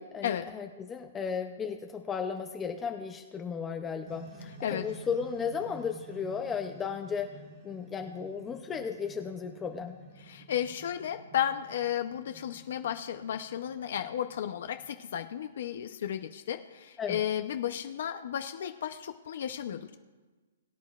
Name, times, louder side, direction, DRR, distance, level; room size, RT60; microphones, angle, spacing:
voice 1, 0.0-7.3 7.6-10.0 17.0-17.2, left 6 dB, 10° left, 4 dB, 0.5 m, -35 dB
sound 1, 4.0-15.5, right 2 dB, 35° right, 1.6 m, -51 dB
voice 2, 10.2-19.9, left 10 dB, 60° left, 7 dB, 0.6 m, -33 dB
22.0 x 9.6 x 2.4 m, 1.3 s
hypercardioid pair, 160°, 0 cm